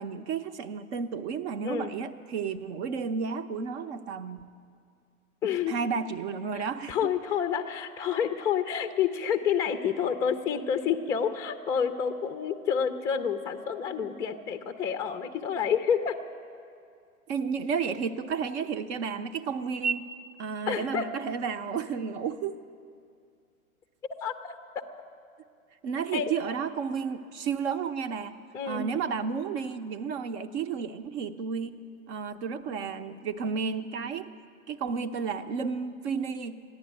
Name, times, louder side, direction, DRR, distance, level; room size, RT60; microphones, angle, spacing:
voice 1, 0.0-4.5 5.7-7.1 17.3-20.1 20.4-22.6 25.8-28.4 28.6-34.3 34.7-36.6, right 6 dB, 50° right, 10 dB, 0.9 m, -32 dB
voice 2, 5.4-5.7 6.5-16.2 20.7-21.0 24.2-24.5 26.1-26.3 28.5-28.9, left 7 dB, 5° left, 8 dB, 0.4 m, -29 dB
14.5 x 10.5 x 9.1 m, 2.3 s
hypercardioid pair, 115°, 42 cm